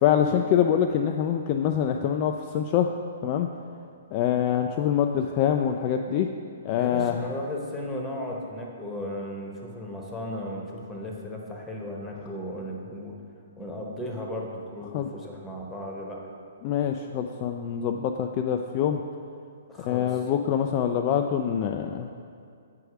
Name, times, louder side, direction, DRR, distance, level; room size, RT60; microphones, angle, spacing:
voice 1, 0.0-2.9 3.2-3.5 4.1-6.3 6.6-7.3 14.9-15.1 16.6-19.0 19.9-22.1, left 9 dB, 35° left, 4 dB, 0.3 m, -25 dB
voice 2, 6.8-13.1 13.6-16.3 19.7-20.3, left 1 dB, 10° left, -1 dB, 1.1 m, -35 dB
7.7 x 4.7 x 4.8 m, 2.3 s
figure-of-eight pair, 125°, 0 cm